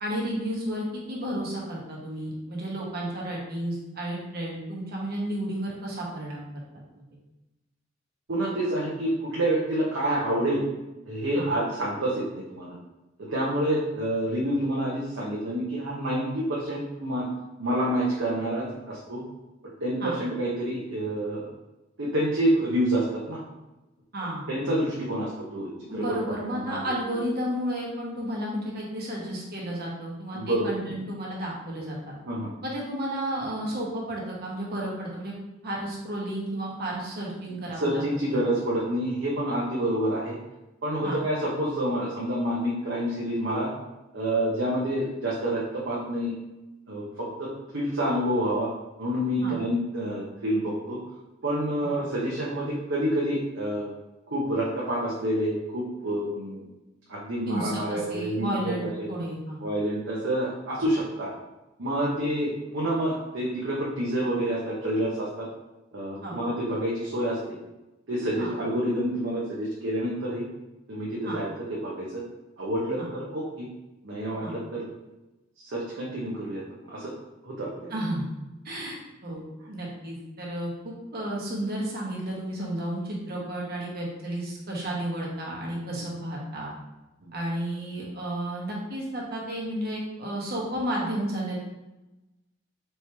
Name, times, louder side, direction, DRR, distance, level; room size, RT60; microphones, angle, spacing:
voice 1, 0.0-6.4 11.3-11.5 20.0-20.1 24.1-24.4 25.9-32.1 32.6-35.3 35.6-38.0 38.3-38.4 41.0-41.2 49.4-49.6 51.8-51.9 57.5-59.6 66.2-66.4 68.4-68.5 71.2-71.4 73.0-73.1 74.4-74.5 77.9-78.2 78.6-86.7 87.3-91.6, right 1 dB, 55° right, -3 dB, 1.2 m, -32 dB
voice 2, 8.3-10.6 11.1-12.7 13.3-17.2 17.6-19.2 19.8-21.5 22.0-23.4 24.5-27.2 30.3-31.0 32.3-32.5 37.7-40.4 40.8-43.7 44.1-46.3 46.9-48.7 49.0-51.0 51.4-53.9 54.3-56.7 57.1-59.1 59.6-61.3 61.8-65.5 65.9-67.6 68.1-70.5 70.9-71.5 71.8-72.2 72.6-73.7 74.0-74.9 75.6-77.1 77.4-77.9 87.2-87.3, right 1 dB, 70° right, -5 dB, 0.8 m, -28 dB
4.3 x 3.1 x 3.4 m, 1.0 s
head